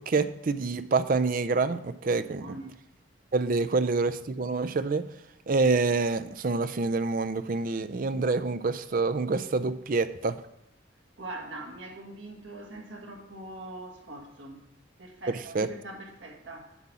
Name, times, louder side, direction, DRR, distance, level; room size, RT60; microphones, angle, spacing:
voice 1, 0.0-2.6 3.3-5.1 5.5-10.5 15.5-15.7, right 3 dB, 45° right, 0.5 m, -27 dB
voice 2, 2.4-2.8 11.2-14.7 15.0-16.8, right 2 dB, 75° right, 2.0 m, -42 dB
8.2 x 6.1 x 5.6 m
head